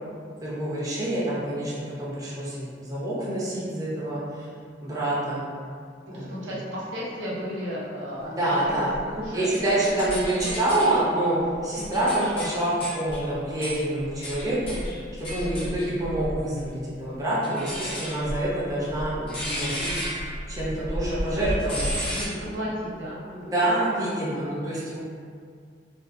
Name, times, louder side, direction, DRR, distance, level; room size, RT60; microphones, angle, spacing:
voice 1, 0.4-4.2 4.8-5.5 6.1-6.4 8.2-8.9 9.3-14.8 15.2-19.9 20.5-21.9 23.5-25.0, right 1 dB, 20° right, -8 dB, 0.5 m, -27 dB
voice 2, 6.0-9.8 10.4-10.9 11.8-12.2 15.3-15.7 17.7-18.1 21.6-23.8, equal, 90° right, -7 dB, 0.7 m, -35 dB
sound 1, 8.9-11.0 11.5-16.7 17.4-22.3, equal, 30° left, 0.6 m, -33 dB
2.5 x 2.3 x 2.4 m, 2.2 s
head